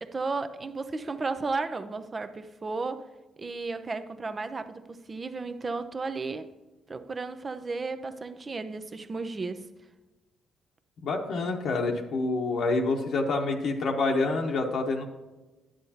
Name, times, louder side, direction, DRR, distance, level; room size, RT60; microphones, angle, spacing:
voice 1, 0.0-3.1 3.4-6.5 6.9-9.7, right 3 dB, 30° right, 0.6 m, -34 dB
voice 2, 11.0-15.0, left 3 dB, 70° left, 1.0 m, -27 dB
10.0 x 7.8 x 2.8 m
cardioid pair, 90°, 0 cm